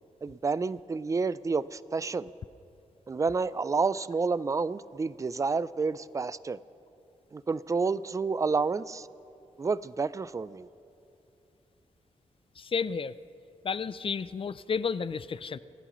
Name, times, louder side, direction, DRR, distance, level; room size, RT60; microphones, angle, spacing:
voice 1, 0.2-2.3 3.1-6.6 7.3-9.1 9.6-10.7, right 4 dB, 25° right, 17 dB, 0.3 m, -29 dB
voice 2, 12.6-13.1 13.6-15.6, left 6 dB, 45° left, 15 dB, 0.4 m, -31 dB
27.5 x 15.5 x 3.1 m, 2.7 s
wide cardioid pair, 100°, 13 cm